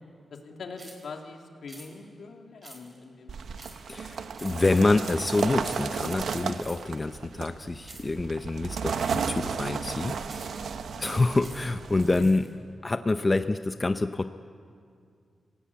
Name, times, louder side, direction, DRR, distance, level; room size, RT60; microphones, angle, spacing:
voice 1, 0.3-3.6 10.9-11.4 12.2-12.3, left 4 dB, 75° left, 2 dB, 2.6 m, -43 dB
sound 1, 0.8-1.1 1.7-1.9 2.6-3.0 3.6-3.9 4.3-6.9 7.8-8.2 9.0-9.4 10.3-10.6 11.1-12.5, right 2 dB, 30° right, 4.4 m, -48 dB
sound 2, 3.3-12.2, right 6 dB, 85° right, 1.0 m, -34 dB
voice 2, 3.9-10.2 10.5-12.4 12.8-14.3, left 2 dB, 25° left, 9 dB, 0.6 m, -27 dB
27.0 x 17.0 x 8.4 m, 2.3 s
wide cardioid pair, 110°, 0 cm